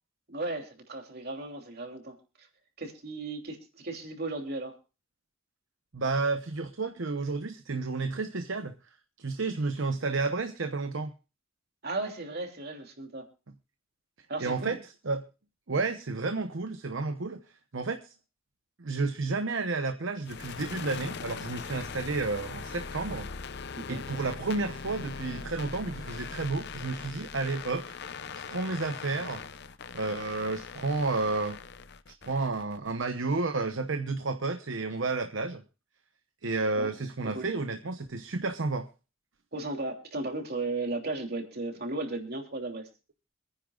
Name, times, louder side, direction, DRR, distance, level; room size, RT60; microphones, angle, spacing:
voice 1, 0.3-2.2 2.8-4.8 11.8-13.3 14.3-14.8 23.8-24.0 36.7-36.9 37.3-37.5 39.5-42.9, right 2 dB, 50° right, 3.0 m, -35 dB
voice 2, 5.9-8.7 9.2-11.1 14.4-14.8 15.1-15.2 15.7-17.4 17.7-18.1 18.8-23.3 23.9-28.0 28.3-29.4 29.9-31.6 32.2-35.6 36.4-38.9, right 3 dB, 65° right, 0.9 m, -31 dB
sound 1, 20.2-33.0, left 5 dB, 55° left, 0.7 m, -41 dB
26.0 x 10.0 x 2.4 m
head